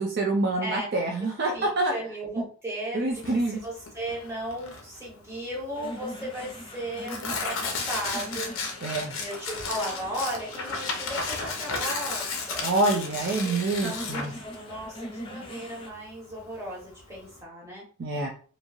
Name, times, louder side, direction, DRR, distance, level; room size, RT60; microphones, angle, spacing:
voice 1, 0.0-1.9 2.9-3.6 8.8-9.1 12.6-14.3 18.0-18.3, right 2 dB, 50° right, 1 dB, 0.4 m, -26 dB
voice 2, 1.5-8.7 9.1-12.7 13.3-17.8, right 1 dB, 15° right, -4 dB, 1.0 m, -36 dB
Tearing, 3.1-17.4, left 4 dB, 75° left, 0.6 m, -34 dB
sound 1, 5.8-15.9, left 1 dB, 25° left, 0.5 m, -42 dB
3.0 x 2.6 x 2.4 m, 0.41 s
head